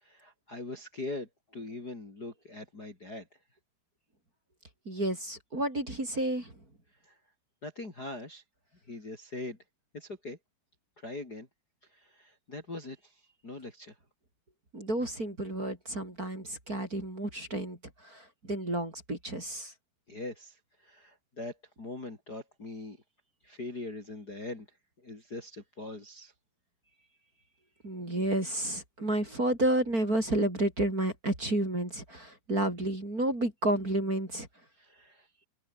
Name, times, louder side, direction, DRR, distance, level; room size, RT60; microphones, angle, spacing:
voice 1, 0.0-3.3 7.1-7.2 7.6-8.4 8.9-9.6 9.9-10.4 11.0-11.5 11.9-13.1 13.4-13.9 20.1-20.6 20.8-23.0 23.4-24.7 25.0-26.3 34.8-35.3, left 2 dB, 25° left, 4.2 m, -41 dB
voice 2, 4.9-6.5 14.7-17.8 18.0-19.7 27.8-34.5, right 1 dB, 20° right, 5.6 m, -31 dB
omnidirectional pair, 4.9 m